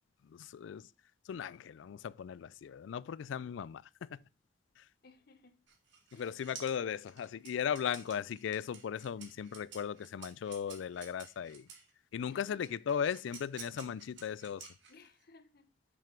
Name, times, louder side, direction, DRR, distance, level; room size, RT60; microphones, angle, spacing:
voice 1, 0.2-0.9 1.3-4.2 4.8-4.9 6.2-11.7 12.1-14.7, left 8 dB, 80° left, 0.3 m, -37 dB
voice 2, 5.0-5.6 6.1-6.3 12.3-12.7 14.9-15.7, left 3 dB, 55° left, 0.7 m, -59 dB
sound 1, 5.7-11.9 12.6-15.2, right 6 dB, 70° right, 1.8 m, -52 dB
7.0 x 6.2 x 4.4 m
head